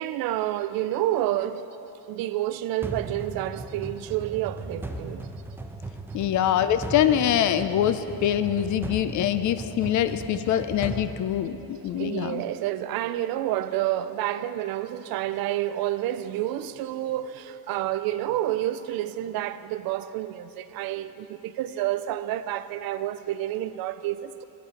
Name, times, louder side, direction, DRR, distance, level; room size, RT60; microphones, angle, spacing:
voice 1, 0.0-1.7 2.1-5.3 11.8-24.4, right 13 dB, 70° right, 0.5 m, -29 dB
sound 1, 2.8-12.0, right 2 dB, 5° right, 0.4 m, -37 dB
voice 2, 6.1-12.4, left 10 dB, 50° left, 0.5 m, -24 dB
10.5 x 8.9 x 5.0 m
cardioid pair, 135°, 37 cm